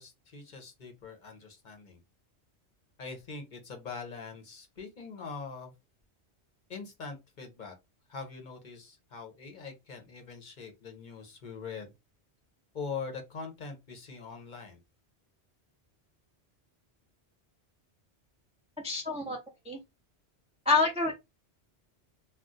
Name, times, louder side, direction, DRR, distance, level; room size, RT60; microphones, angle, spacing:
voice 1, 0.0-2.0 3.0-5.7 6.7-7.7 8.1-11.9 12.7-14.8, left 5 dB, 50° left, 0.8 m, -42 dB
voice 2, 18.8-19.4 19.7-19.8 20.7-21.1, left 3 dB, 10° right, 0.4 m, -27 dB
2.4 x 2.3 x 3.8 m
omnidirectional pair, 1.1 m